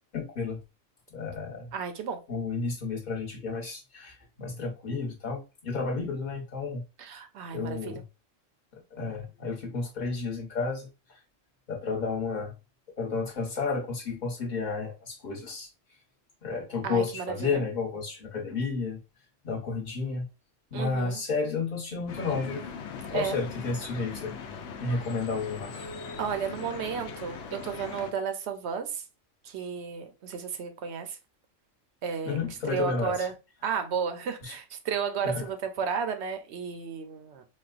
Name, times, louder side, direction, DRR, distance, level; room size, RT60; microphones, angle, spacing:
voice 1, 0.1-0.6 1.1-1.7 2.3-6.8 7.5-8.0 8.9-11.2 11.7-12.5 13.0-15.7 16.4-19.0 19.4-20.3 20.7-22.6 23.1-24.3 24.7-25.9 32.2-33.3 34.4-34.5 35.2-35.5, left 4 dB, 40° left, 1.1 m, -32 dB
voice 2, 1.7-2.2 7.0-8.0 16.8-17.6 20.7-21.2 23.1-23.4 24.9-25.0 26.2-29.0 29.4-31.2 32.0-32.4 32.7-33.3 33.6-37.5, right 6 dB, 65° right, 0.8 m, -33 dB
sound 1, 22.1-28.1, left 5 dB, 70° left, 0.8 m, -40 dB
4.1 x 2.2 x 2.4 m
omnidirectional pair, 1.3 m